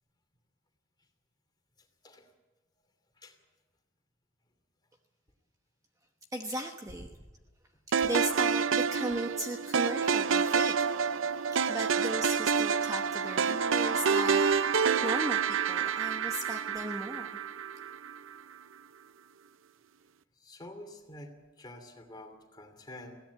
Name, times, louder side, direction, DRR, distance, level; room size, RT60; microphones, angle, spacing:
voice 1, 6.3-7.1 8.0-10.8 11.7-14.4 14.7-17.4, right 1 dB, 15° right, 4 dB, 1.0 m, -37 dB
sound 1, 7.9-18.2, right 6 dB, 75° right, 0.6 m, -28 dB
voice 2, 20.4-23.2, left 1 dB, 20° left, 4 dB, 2.8 m, -48 dB
21.0 x 16.5 x 8.4 m, 1.1 s
head